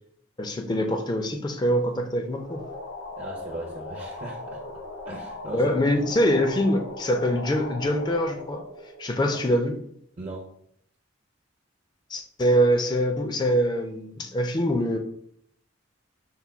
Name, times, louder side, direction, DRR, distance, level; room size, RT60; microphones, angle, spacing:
voice 1, 0.4-2.6 5.5-8.6 9.0-9.8 12.1-15.0, equal, 20° left, 5 dB, 0.4 m, -24 dB
sound 1, 2.3-9.7, left 2 dB, 70° left, 0.7 m, -39 dB
voice 2, 3.2-4.6 5.1-5.7 9.3-9.4 10.2-10.5, right 1 dB, 35° right, -1 dB, 0.5 m, -38 dB
5.6 x 2.2 x 3.4 m, 0.70 s
head